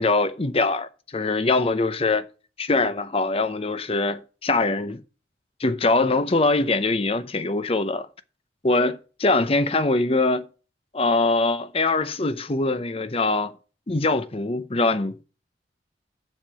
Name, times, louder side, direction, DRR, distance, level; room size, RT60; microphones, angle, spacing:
voice 1, 0.0-2.3 2.6-5.0 5.6-8.1 8.6-10.5 10.9-13.6 13.9-15.2, left 3 dB, 30° left, 0.7 m, -23 dB
7.6 x 6.6 x 7.7 m
head